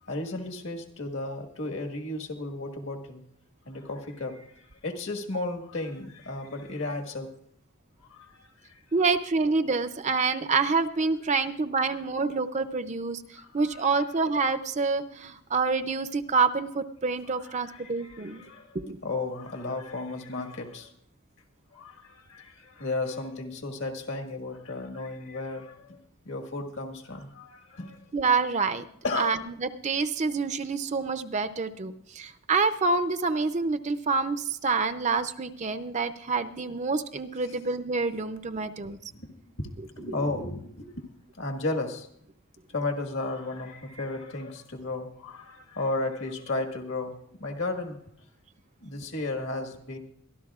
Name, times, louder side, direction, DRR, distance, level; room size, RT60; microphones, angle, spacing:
voice 1, 0.0-3.2 3.6-7.3 8.0-8.8 13.3-14.2 17.3-20.9 21.7-26.0 26.2-28.0 29.0-29.4 38.5-38.6 39.1-41.1 41.3-42.1 42.7-47.1 47.4-48.0 48.8-50.0, left 2 dB, 60° left, 4 dB, 1.6 m, -34 dB
voice 2, 8.9-13.2 13.5-18.4 18.7-19.0 28.1-28.9 29.2-39.0, right 4 dB, 35° right, 10 dB, 0.5 m, -27 dB
23.5 x 12.5 x 2.4 m, 0.68 s
head